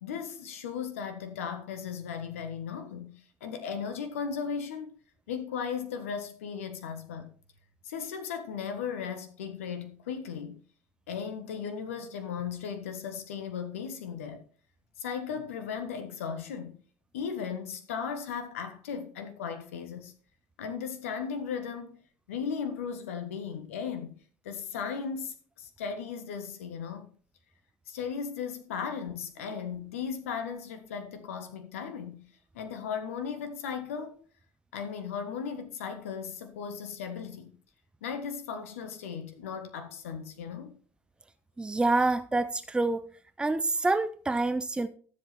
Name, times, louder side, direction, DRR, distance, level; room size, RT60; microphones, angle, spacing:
voice 1, 0.0-3.1 3.4-4.9 5.3-7.3 7.8-10.6 11.1-14.4 15.0-16.8 17.1-20.1 20.6-22.0 22.3-24.2 24.4-27.1 27.9-32.2 32.5-34.1 34.7-37.5 38.0-40.8, left 6 dB, 70° left, 1.5 m, -36 dB
voice 2, 41.6-43.0 43.4-44.9, right 2 dB, 10° right, 0.9 m, -27 dB
13.5 x 7.8 x 4.2 m
figure-of-eight pair, 60°, 8 cm